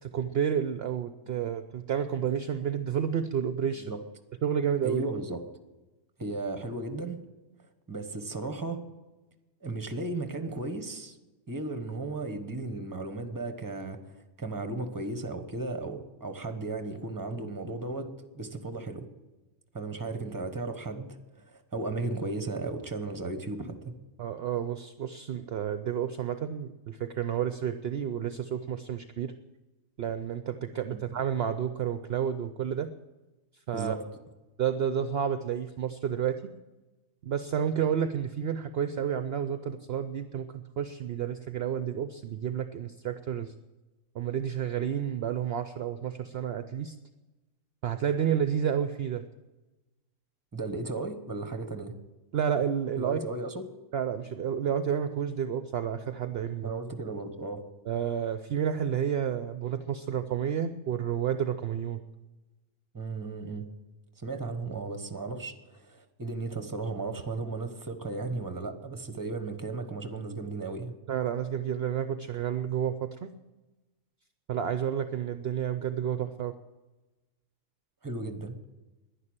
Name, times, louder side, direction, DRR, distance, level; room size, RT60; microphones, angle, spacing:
voice 1, 0.0-3.9 4.4-5.1 24.2-29.3 30.0-32.9 33.7-34.0 34.6-36.4 37.2-43.5 44.1-46.9 47.8-49.2 52.3-53.2 53.9-56.7 57.9-62.0 71.1-73.3 74.5-76.5, right 8 dB, 60° right, 10 dB, 0.8 m, -30 dB
voice 2, 4.8-5.4 6.2-7.2 7.9-8.8 9.6-11.2 11.5-14.0 14.4-19.1 19.7-23.9 33.7-34.1 50.5-51.9 53.0-53.7 56.6-57.6 62.9-63.7 64.2-70.9 78.0-78.5, right 3 dB, 15° right, 8 dB, 1.1 m, -35 dB
11.0 x 10.5 x 8.8 m, 1.1 s
omnidirectional pair, 1.4 m